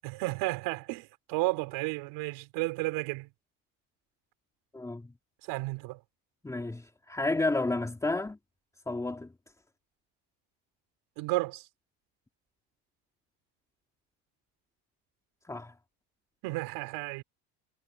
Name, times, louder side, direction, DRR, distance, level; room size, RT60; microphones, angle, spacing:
voice 1, 0.0-3.3 5.4-6.0 11.2-11.7 16.4-17.2, right 22 dB, 80° right, 4.2 m, -32 dB
voice 2, 4.7-5.1 6.4-8.4 8.9-9.3 15.4-15.7, left 2 dB, 10° left, 3.4 m, -31 dB
cardioid pair, 155°, 39 cm